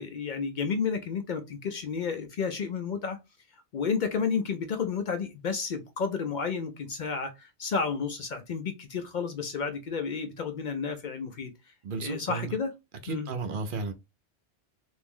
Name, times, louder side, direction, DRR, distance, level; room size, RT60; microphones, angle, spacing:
voice 1, 0.0-3.2 3.7-11.5 11.9-12.7 13.1-13.3, left 5 dB, 55° left, 0.5 m, -31 dB
voice 2, 11.8-12.5 13.0-13.9, right 4 dB, 60° right, 0.7 m, -33 dB
2.9 x 2.6 x 3.6 m
omnidirectional pair, 1.1 m